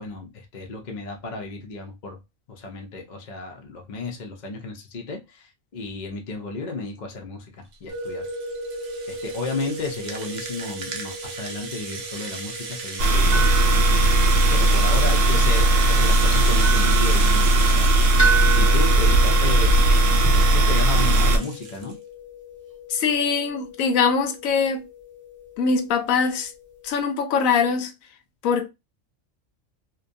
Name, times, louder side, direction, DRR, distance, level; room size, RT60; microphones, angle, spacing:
voice 1, 0.0-2.2 2.5-8.3 9.1-13.5 14.5-17.9 18.6-19.8 20.1-21.9, left 3 dB, 50° left, 0.5 m, -33 dB
Rattle (instrument), 7.7-21.9, right 4 dB, 55° right, 0.5 m, -36 dB
sound 1, 7.9-27.0, right 3 dB, 15° right, 0.8 m, -34 dB
sound 2, 13.0-21.4, right 1 dB, 75° right, 0.9 m, -17 dB
voice 2, 22.9-24.8 25.6-26.5 26.8-27.9 28.4-28.7, left 5 dB, 85° left, 1.0 m, -22 dB
2.7 x 2.2 x 2.5 m
omnidirectional pair, 1.4 m